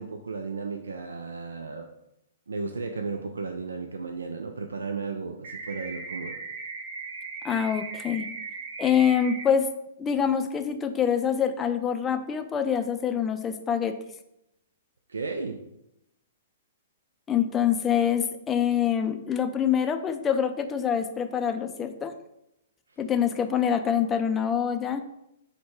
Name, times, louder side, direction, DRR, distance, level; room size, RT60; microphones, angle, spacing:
voice 1, 0.0-1.9 2.5-6.4 15.1-15.6, right 4 dB, 85° right, 5 dB, 0.3 m, -34 dB
sound 1, 5.4-9.4, right 4 dB, 45° right, 0.8 m, -38 dB
voice 2, 7.4-8.3 8.8-9.7 10.0-13.9 17.3-22.1 23.0-25.0, left 8 dB, 20° left, 8 dB, 0.4 m, -25 dB
4.3 x 2.2 x 4.6 m, 0.83 s
hypercardioid pair, 120°, 0 cm